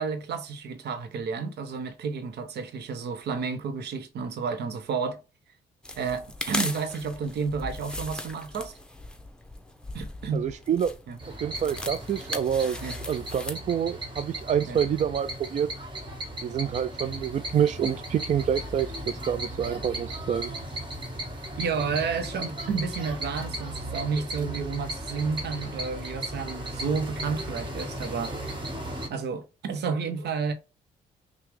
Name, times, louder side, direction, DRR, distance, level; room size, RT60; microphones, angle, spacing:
voice 1, 0.0-5.2 6.0-8.7 9.9-10.5 11.1-11.2 12.8-13.0 14.7-14.8 21.6-28.7 29.1-30.5, right 5 dB, 70° right, 0.9 m, -31 dB
sound 1, 5.8-13.6, left 1 dB, 5° left, 1.0 m, -38 dB
voice 2, 10.3-10.9 11.4-12.8 13.1-15.7 16.4-20.6, right 8 dB, 40° right, 0.4 m, -27 dB
sound 2, 11.2-29.1, right 1 dB, 25° right, 1.6 m, -36 dB
5.8 x 2.3 x 3.2 m
supercardioid pair, 65°, 18 cm